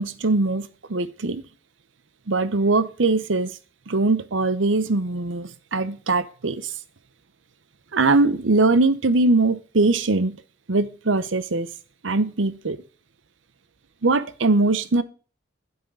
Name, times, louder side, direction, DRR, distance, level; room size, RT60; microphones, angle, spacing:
voice 1, 0.0-1.4 2.3-3.6 3.9-6.7 7.9-10.4 10.7-11.7 12.0-12.8 14.0-15.0, right 3 dB, 90° right, 14 dB, 0.9 m, -21 dB
9.1 x 8.1 x 3.9 m, 0.37 s
head